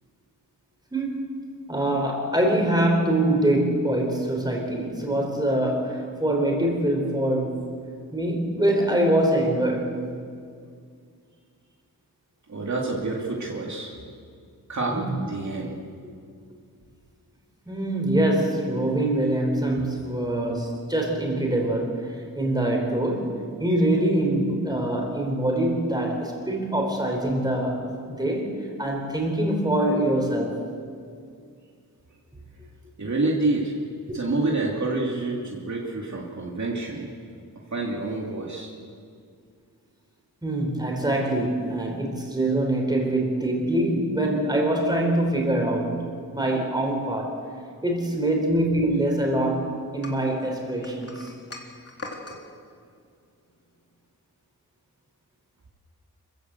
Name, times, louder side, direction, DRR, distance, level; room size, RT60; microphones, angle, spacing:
voice 1, 0.9-1.3 1.7-7.6 8.1-9.9 14.9-15.1 17.6-23.3 23.6-28.5 28.8-30.6 40.4-46.0 46.3-47.4 47.8-51.3, right 1 dB, 10° right, 1 dB, 4.7 m, -24 dB
voice 2, 12.5-13.9 14.7-15.0 15.3-15.7 33.0-37.1 37.7-38.7, right 2 dB, 50° right, -2 dB, 2.7 m, -28 dB
sound 1, 50.0-52.4, left 2 dB, 40° left, 3.0 m, -40 dB
26.5 x 15.0 x 8.0 m, 2.2 s
wide cardioid pair, 110°, 37 cm